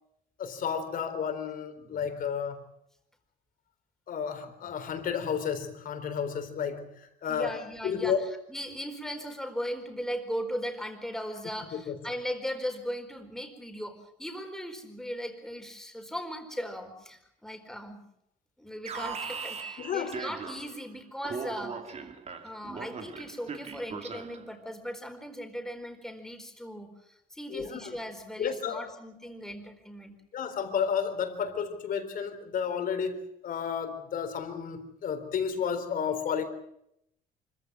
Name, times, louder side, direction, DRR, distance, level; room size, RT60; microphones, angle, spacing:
voice 1, 0.4-2.6 4.1-8.3 11.7-12.0 19.8-20.2 27.5-27.9 28.4-28.9 30.3-36.4, left 7 dB, 55° left, 4.0 m, -32 dB
voice 2, 7.3-18.0 18.6-22.0 22.4-30.1, equal, 5° left, 4.5 m, -38 dB
Alarm, 18.8-20.9 21.2-24.5, right 5 dB, 40° right, 2.4 m, -39 dB
25.0 x 15.0 x 9.5 m
cardioid pair, 110°, 17 cm